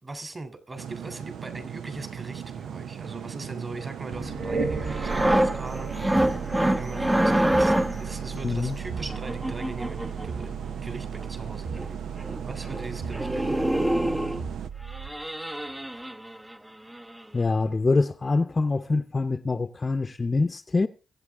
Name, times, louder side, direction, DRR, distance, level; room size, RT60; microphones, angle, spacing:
voice 1, 0.0-5.9 6.8-10.5 10.8-12.1 12.4-13.9, right 2 dB, 35° right, 3.2 m, -40 dB
sound 1, 0.8-14.7, right 8 dB, 80° right, 0.6 m, -38 dB
sound 2, 4.1-15.2, right 4 dB, 60° right, 2.8 m, -35 dB
sound 3, 4.9-8.1 9.1-10.3 11.4-11.5 11.8-11.9 12.2-12.4 12.7-12.9 13.1-14.4 14.9-16.5 16.9-17.1, right 1 dB, 10° right, 0.8 m, -26 dB
voice 2, 8.4-8.8 17.3-20.9, left 3 dB, 35° left, 0.8 m, -25 dB
23.0 x 8.2 x 3.6 m
cardioid pair, 70°, 0 cm